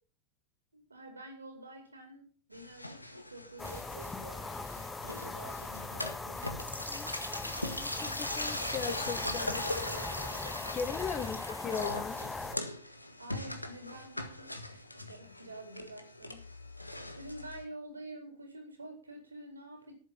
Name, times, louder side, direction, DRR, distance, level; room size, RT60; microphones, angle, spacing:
voice 1, 0.7-4.5 5.0-6.5 11.2-11.3 13.2-19.9, right 1 dB, 80° right, 4 dB, 4.5 m, -48 dB
sound 1, 2.5-17.6, left 1 dB, 85° left, 1.6 m, -40 dB
sound 2, 3.6-12.6, left 3 dB, 10° left, 0.8 m, -40 dB
voice 2, 6.9-9.6 10.7-12.2, left 7 dB, 30° left, 10 dB, 1.6 m, -39 dB
11.5 x 9.0 x 7.1 m, 0.41 s
figure-of-eight pair, 90°, 0 cm